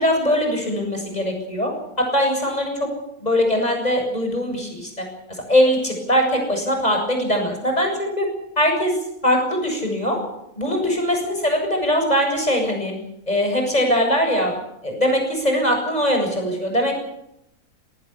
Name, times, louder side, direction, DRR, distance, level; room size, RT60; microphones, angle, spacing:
voice 1, 0.0-1.7 2.0-2.9 3.2-5.1 5.5-8.3 8.6-10.2 10.6-12.9 13.3-14.6 14.8-16.9, equal, 25° left, 3 dB, 7.7 m, -21 dB
20.5 x 18.5 x 8.6 m, 0.80 s
omnidirectional pair, 1.7 m